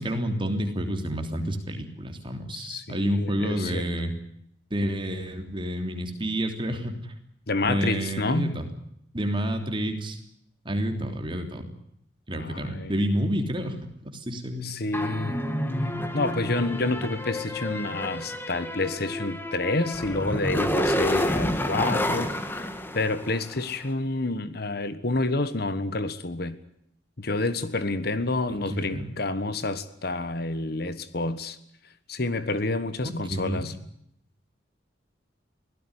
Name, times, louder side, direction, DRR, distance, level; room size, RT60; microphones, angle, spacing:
voice 1, 0.0-4.1 4.7-6.9 7.6-8.7 9.1-10.2 10.6-11.7 12.3-13.8 14.1-14.7 28.9-29.1 33.0-33.7, equal, 25° right, 3.3 m, -29 dB
voice 2, 2.5-3.9 7.5-8.5 12.3-12.9 14.6-15.4 16.1-22.7 22.9-26.6 27.2-31.6 32.1-33.7, left 2 dB, 55° left, 1.4 m, -29 dB
sound 1, 14.9-23.6, equal, 10° left, 2.0 m, -29 dB
24.0 x 17.5 x 9.9 m
head